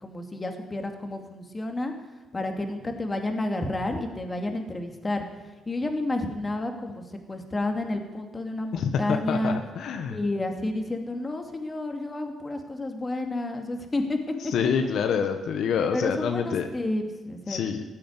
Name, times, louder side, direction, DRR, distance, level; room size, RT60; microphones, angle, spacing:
voice 1, 0.0-1.9 2.3-5.2 5.7-7.0 7.3-9.6 10.1-14.2 14.4-14.5 15.9-17.6, left 2 dB, 25° left, 4 dB, 2.5 m, -30 dB
voice 2, 8.7-10.2 14.5-16.7 17.5-17.8, left 7 dB, 75° left, 6 dB, 1.2 m, -27 dB
15.5 x 8.6 x 9.7 m, 1.1 s
cardioid pair, 90°, 0 cm